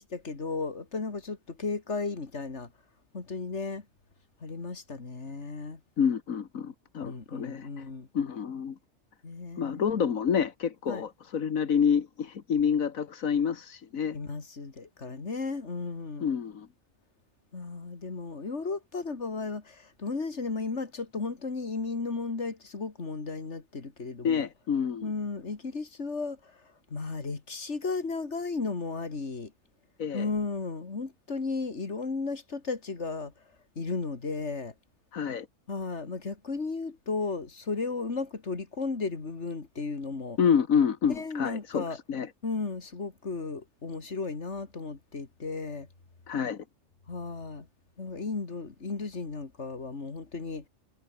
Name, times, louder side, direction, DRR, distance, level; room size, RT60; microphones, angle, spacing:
voice 1, 0.0-2.7 3.1-3.9 4.4-5.8 7.0-8.1 9.2-10.0 10.9-11.0 14.1-16.3 17.5-24.5 25.0-29.5 30.1-33.3 33.8-34.7 35.7-40.4 41.1-42.0 42.4-45.9 47.1-47.7 48.0-50.6, left 4 dB, 60° left, 2.9 m, -34 dB
voice 2, 6.0-7.8 8.1-8.8 9.6-14.2 16.2-16.7 24.2-25.1 30.0-30.3 35.1-35.5 40.4-42.3 46.3-46.6, left 7 dB, 85° left, 1.8 m, -28 dB
omnidirectional pair, 1.4 m